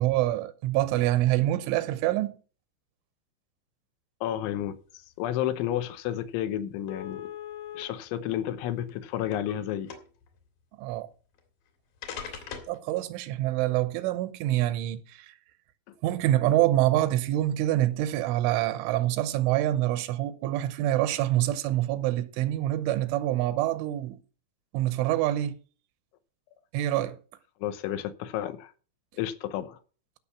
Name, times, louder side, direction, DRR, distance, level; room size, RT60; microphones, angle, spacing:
voice 1, 0.0-2.4 10.8-11.1 12.7-15.3 16.0-24.2 24.7-25.6 26.7-27.2, right 14 dB, 85° right, 3.3 m, -26 dB
voice 2, 4.2-7.3 7.8-9.9 15.9-16.0 27.6-28.7 29.2-29.8, left 11 dB, 80° left, 3.3 m, -31 dB
sound 1, 5.8-5.9 6.2-6.3 6.9-7.8 8.7-9.6 9.9-10.3 11.4-11.5 12.0-12.8, left 8 dB, 55° left, 3.4 m, -40 dB
15.5 x 6.4 x 5.8 m
omnidirectional pair, 5.5 m